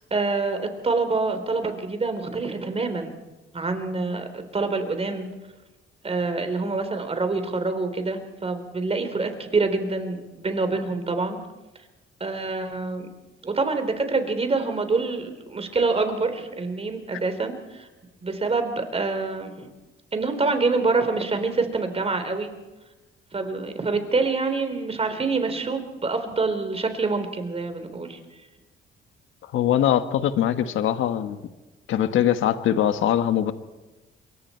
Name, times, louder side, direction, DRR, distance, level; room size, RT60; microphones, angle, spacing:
voice 1, 0.0-3.1 3.5-5.3 6.0-11.4 12.2-13.1 13.4-17.9 18.2-19.7 20.1-22.5 23.3-28.2, right 3 dB, 30° right, 8 dB, 3.8 m, -26 dB
voice 2, 29.4-31.4 31.9-33.5, left 10 dB, 80° left, 10 dB, 1.4 m, -22 dB
26.5 x 23.0 x 4.5 m, 1.1 s
cardioid pair, 90°, 20 cm